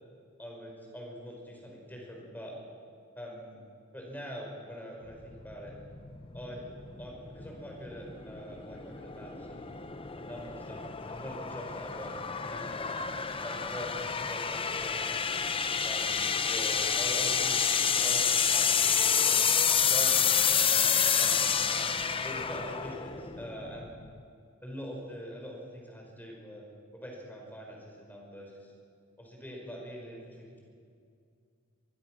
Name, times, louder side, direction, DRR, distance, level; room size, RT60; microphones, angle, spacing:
voice 1, 0.4-2.5 3.2-3.6 3.9-5.7 6.3-6.6 7.0-9.7 10.2-13.1 13.4-15.3 15.8-19.4 19.8-20.7 21.2-24.0 24.6-26.6 26.9-28.7 29.2-30.6, equal, 10° left, -1 dB, 5.6 m, -43 dB
sound 1, 5.1-24.2, left 7 dB, 25° left, 0.8 m, -29 dB
24.0 x 22.5 x 6.4 m, 2.3 s
head